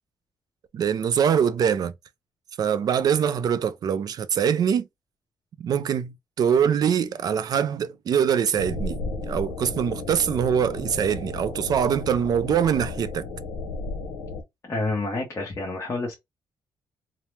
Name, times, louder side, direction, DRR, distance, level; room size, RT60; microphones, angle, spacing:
voice 1, 0.7-1.9 2.6-4.9 5.6-13.2, right 8 dB, 45° right, 0.3 m, -23 dB
sound 1, 8.5-14.4, left 3 dB, 80° left, 0.7 m, -34 dB
voice 2, 14.6-16.1, left 3 dB, 30° left, 1.0 m, -28 dB
2.8 x 2.0 x 3.1 m
cardioid pair, 155°, 9 cm